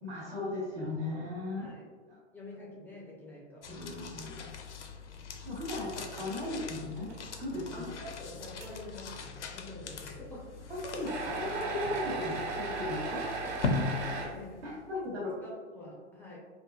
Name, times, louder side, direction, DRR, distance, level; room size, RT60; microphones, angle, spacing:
voice 1, 0.0-1.7 3.7-4.4 5.4-7.1 7.4-7.9 10.7-13.2 14.6-15.3, left 2 dB, 70° right, -5 dB, 1.2 m, -37 dB
voice 2, 2.3-3.7 6.0-6.2 7.7-10.7 13.0-14.6 14.9-16.4, left 1 dB, 5° left, -4 dB, 0.4 m, -47 dB
sound 1, 3.6-15.0, left 4 dB, 80° left, 0.6 m, -40 dB
sound 2, 6.2-6.6 7.0-7.1 7.8-7.9 8.6-8.7 11.1-14.3, right 4 dB, 45° right, 1.0 m, -36 dB
4.0 x 2.6 x 2.3 m, 1.5 s
hypercardioid pair, 110°, 35 cm